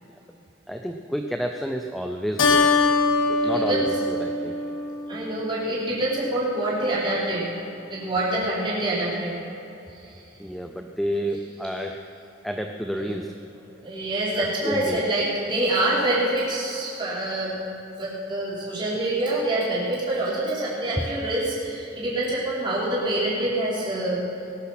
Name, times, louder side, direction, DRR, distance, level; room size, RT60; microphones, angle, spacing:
voice 1, 0.7-2.8 3.3-4.6 10.4-12.0 12.4-13.3 14.4-15.0, equal, ahead, 3 dB, 0.6 m, -30 dB
Keyboard (musical), 2.4-5.3, left 3 dB, 85° left, 1.7 m, -22 dB
voice 2, 4.6-7.4 7.9-9.3 13.0-13.1 13.7-17.6 18.0-24.2, right 1 dB, 25° right, -8 dB, 4.7 m, -26 dB
20.0 x 12.0 x 6.0 m, 3.0 s
head